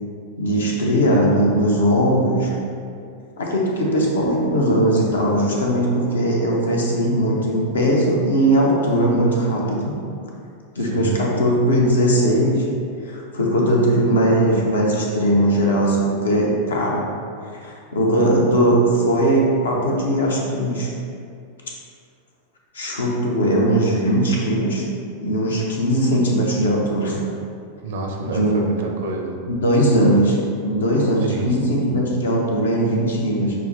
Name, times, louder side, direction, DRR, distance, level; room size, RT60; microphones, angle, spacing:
voice 1, 0.4-2.5 3.4-9.9 10.7-12.6 13.0-17.1 17.6-20.9 22.7-24.8 25.2-27.2 28.2-28.8 29.5-30.4 30.6-33.5, right 1 dB, 70° left, -2 dB, 0.6 m, -19 dB
voice 2, 10.8-11.1 27.8-29.4 31.3-31.7, right 2 dB, 55° right, 1 dB, 0.5 m, -29 dB
5.7 x 2.1 x 2.5 m, 2.3 s
figure-of-eight pair, 90°, 0 cm